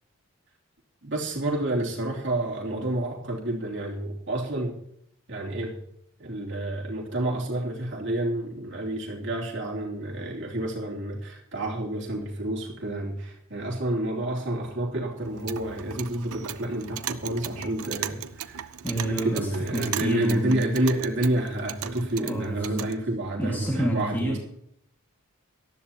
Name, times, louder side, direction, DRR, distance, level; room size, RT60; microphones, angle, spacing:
voice 1, 1.0-4.8 5.3-5.8 6.2-24.4, right 1 dB, 55° right, -2 dB, 3.0 m, -29 dB
Clock, 15.2-23.0, right 9 dB, 85° right, 0.7 m, -37 dB
voice 2, 18.8-20.7 22.2-22.9 23.4-24.4, right 1 dB, 10° left, -2 dB, 1.9 m, -29 dB
18.5 x 13.0 x 2.9 m, 0.70 s
head